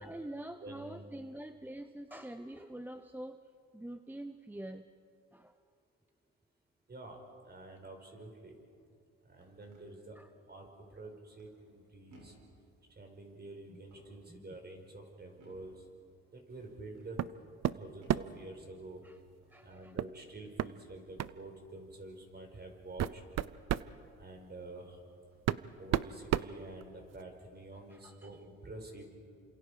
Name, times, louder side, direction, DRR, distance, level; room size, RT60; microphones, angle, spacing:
voice 1, 0.0-3.5 3.7-4.8 5.3-5.6 10.2-10.3 13.7-13.8 14.3-14.5 19.0-19.2 19.5-20.0 27.9-28.4, right 1 dB, 5° right, 9 dB, 0.7 m, -46 dB
voice 2, 0.6-1.0 2.1-2.2 6.9-8.5 9.3-10.2 10.5-12.3 12.9-15.7 16.3-17.2 17.7-19.0 19.6-23.2 24.2-25.0 25.8-29.1, right 2 dB, 35° right, 3 dB, 5.1 m, -48 dB
sound 1, 9.1-9.9 11.4-11.8 12.1-12.6 13.7-14.3 15.4-15.8 16.6-17.1 18.0-18.4 19.3-19.7 20.3-20.6 21.8-22.1 24.3-24.4 25.2-25.6 25.9-26.3, right 1 dB, 85° right, 7.7 m, -63 dB
sound 2, 17.2-17.4 17.6-18.4 20.0-20.1 20.6-20.7 21.2-21.4 22.2-22.3 22.8-23.9 25.0-25.1 25.5-27.2, right 11 dB, 60° right, 0.6 m, -33 dB
29.0 x 26.5 x 5.0 m, 2.4 s
cardioid pair, 90°, 30 cm